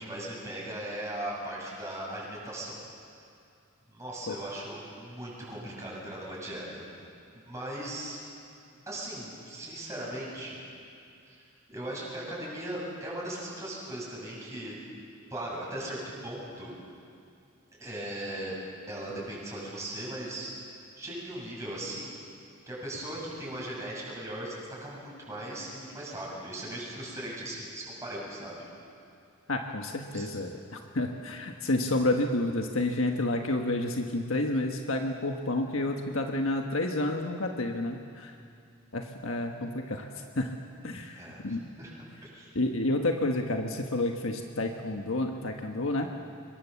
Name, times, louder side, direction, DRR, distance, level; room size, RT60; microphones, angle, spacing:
voice 1, 0.0-2.8 3.9-8.2 8.9-10.6 11.2-11.4 11.7-14.8 15.3-16.7 17.8-18.5 18.9-20.5 21.0-22.2 22.7-24.6 24.8-28.6 30.1-30.3 41.1-41.9 42.2-42.5, right 1 dB, 15° right, -5 dB, 7.3 m, -38 dB
voice 2, 29.5-38.3 38.9-40.5 40.8-41.6 42.5-46.1, left 2 dB, 75° left, 3 dB, 1.4 m, -30 dB
25.0 x 22.5 x 7.2 m, 2.5 s
head